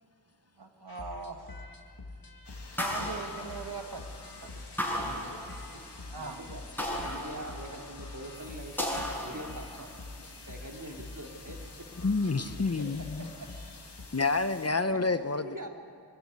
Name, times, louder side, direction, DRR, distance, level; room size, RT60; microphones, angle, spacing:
voice 1, 0.6-1.4 2.8-4.0 6.1-6.4, right 4 dB, 75° right, 5 dB, 1.7 m, -40 dB
sound 1, 0.9-14.1, left 2 dB, 60° left, 1.9 m, -47 dB
sound 2, 2.4-14.7, left 3 dB, 90° left, 2.2 m, -51 dB
sound 3, 2.8-4.1 4.8-6.0 6.8-8.0 8.8-9.9, equal, 5° left, 6.7 m, -35 dB
voice 2, 4.7-5.3 6.1-6.6 7.0-9.9 10.4-11.6 12.4-12.7 13.2-13.5 14.8-15.0 15.3-15.7, right 1 dB, 50° right, 2 dB, 2.7 m, -44 dB
voice 3, 12.0-13.3 14.1-15.7, left 3 dB, 40° left, 11 dB, 0.8 m, -29 dB
23.5 x 12.5 x 9.5 m, 2.2 s
wide cardioid pair, 40°, 40 cm